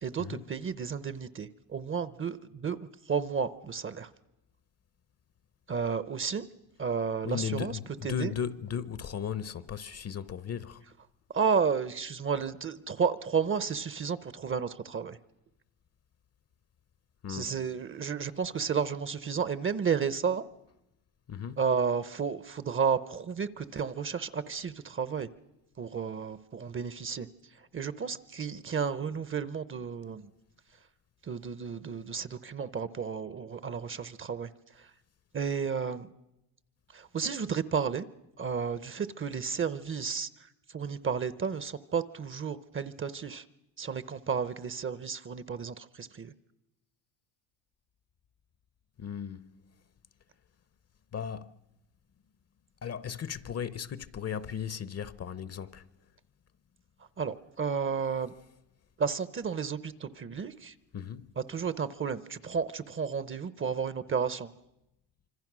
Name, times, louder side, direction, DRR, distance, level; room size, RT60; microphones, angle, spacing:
voice 1, 0.0-4.1 5.7-6.5 6.8-8.3 11.3-15.2 17.3-20.5 21.6-25.3 25.8-27.3 27.7-30.3 31.2-34.5 34.8-34.9 35.3-36.1 36.9-38.1 38.4-40.3 40.7-43.4 43.8-46.3 57.2-58.3 59.0-60.7 61.4-64.5, right 6 dB, 25° right, 0.7 m, -32 dB
voice 2, 7.2-10.8 17.2-17.6 21.3-21.6 49.0-49.6 51.1-51.5 52.8-55.9 60.9-61.3, left 8 dB, 30° left, 0.7 m, -36 dB
26.0 x 25.0 x 6.2 m
cardioid pair, 110°, 48 cm